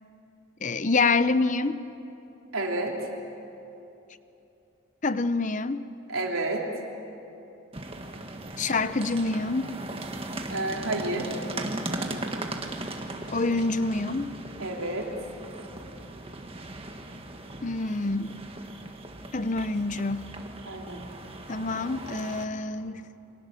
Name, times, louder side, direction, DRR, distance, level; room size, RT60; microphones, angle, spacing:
voice 1, 0.6-1.8 5.0-5.9 8.6-9.7 13.3-14.3 17.6-18.4 19.3-20.3 21.5-23.0, left 3 dB, 35° left, 13 dB, 0.7 m, -26 dB
voice 2, 2.5-3.0 6.1-6.7 10.5-11.3 14.6-15.1 20.7-21.0, right 2 dB, 80° right, 0 dB, 3.6 m, -30 dB
sound 1, 7.7-22.4, right 2 dB, 25° right, 1.6 m, -38 dB
29.0 x 24.5 x 7.0 m, 2.9 s
head